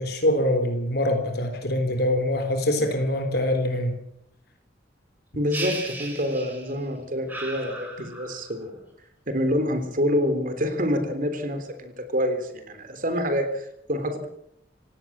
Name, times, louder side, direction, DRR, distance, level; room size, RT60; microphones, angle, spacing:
voice 1, 0.0-4.0, left 1 dB, 60° left, 6 dB, 3.7 m, -24 dB
voice 2, 5.4-8.8 9.3-14.3, equal, 50° right, 8 dB, 3.7 m, -27 dB
sound 1, 5.5-6.8 7.3-8.5, right 2 dB, 10° right, 7.1 m, -36 dB
28.0 x 17.5 x 7.5 m, 0.78 s
head